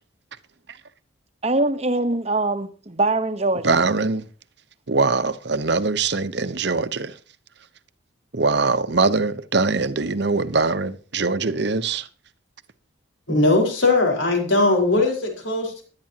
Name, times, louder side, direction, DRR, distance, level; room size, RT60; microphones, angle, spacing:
voice 1, 1.4-3.9, right 2 dB, 30° right, 1.0 m, -23 dB
voice 2, 3.6-4.2 4.9-7.2 8.3-12.1, right 3 dB, 55° right, 0.9 m, -22 dB
voice 3, 13.3-15.8, left 2 dB, 75° left, 4.6 m, -19 dB
16.5 x 11.5 x 2.9 m
head